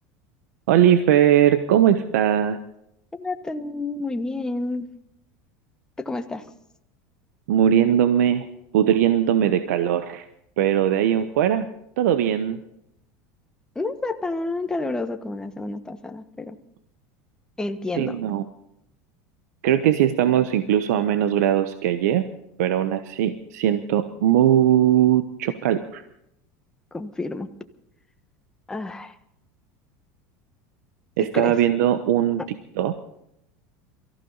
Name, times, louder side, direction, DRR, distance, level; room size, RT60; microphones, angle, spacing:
voice 1, 0.7-2.6 7.5-8.4 8.7-10.3 10.6-11.7 12.0-12.6 17.9-18.4 19.6-22.2 22.6-26.0 31.2-32.4 32.8-32.9, right 10 dB, 85° right, 10 dB, 1.1 m, -20 dB
voice 2, 3.1-4.9 6.0-6.4 13.7-16.6 17.6-18.2 26.9-27.5 28.7-29.1 31.3-31.5 32.4-32.5, left 2 dB, 10° left, 7 dB, 1.2 m, -29 dB
23.5 x 15.0 x 4.0 m, 0.78 s
supercardioid pair, 135°, 8 cm